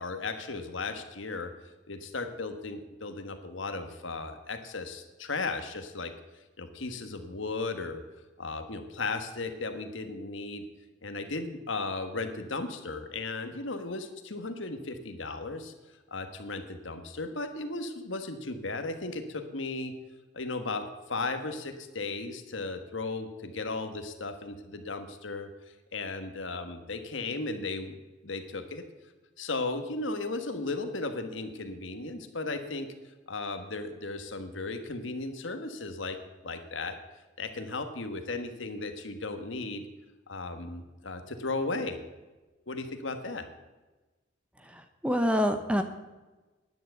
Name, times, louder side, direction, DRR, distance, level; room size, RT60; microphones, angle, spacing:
voice 1, 0.0-1.5 1.9-6.1 6.6-8.0 8.4-10.6 11.0-15.7 16.1-19.9 20.3-25.5 25.9-28.8 29.4-32.9 33.3-36.2 36.4-37.0 37.4-39.8 40.3-42.0 42.7-43.5, left 3 dB, 75° left, 7 dB, 1.4 m, -35 dB
voice 2, 44.7-45.8, equal, 5° right, 8 dB, 0.8 m, -26 dB
10.5 x 9.5 x 7.8 m, 1.2 s
head